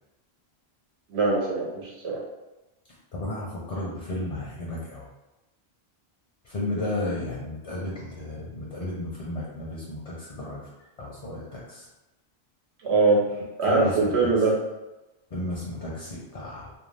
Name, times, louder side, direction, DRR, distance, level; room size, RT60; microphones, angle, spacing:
voice 1, 1.1-2.2 12.8-13.3 13.6-14.6, right 3 dB, 85° right, -3 dB, 1.0 m, -22 dB
voice 2, 3.1-5.1 6.4-10.7 11.0-11.9 13.7-14.0 15.3-16.7, left 1 dB, 45° left, -4 dB, 0.6 m, -33 dB
2.6 x 2.2 x 3.2 m, 1.0 s
omnidirectional pair, 1.1 m